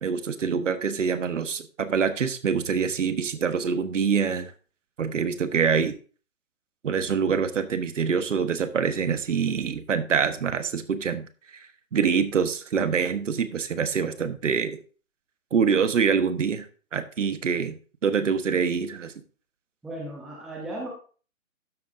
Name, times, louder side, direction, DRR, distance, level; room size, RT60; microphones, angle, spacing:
voice 1, 0.0-4.5 5.0-5.9 6.8-11.3 11.5-11.7 11.9-14.8 15.5-16.7 16.9-19.1, right 6 dB, 65° right, 11 dB, 1.4 m, -25 dB
voice 2, 19.8-20.9, right 1 dB, ahead, -3 dB, 0.7 m, -36 dB
12.0 x 8.4 x 2.7 m, 0.39 s
hypercardioid pair, 150°, 41 cm